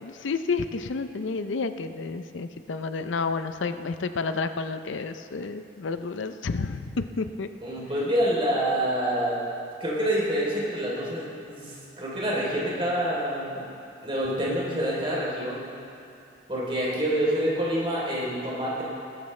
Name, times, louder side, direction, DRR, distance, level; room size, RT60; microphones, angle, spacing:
voice 1, 0.0-7.5, left 4 dB, 85° left, 10 dB, 0.5 m, -30 dB
voice 2, 7.6-9.4 9.8-13.6 14.0-15.7 16.5-18.8, equal, 30° right, -5 dB, 3.2 m, -27 dB
20.5 x 12.5 x 3.2 m, 2.6 s
head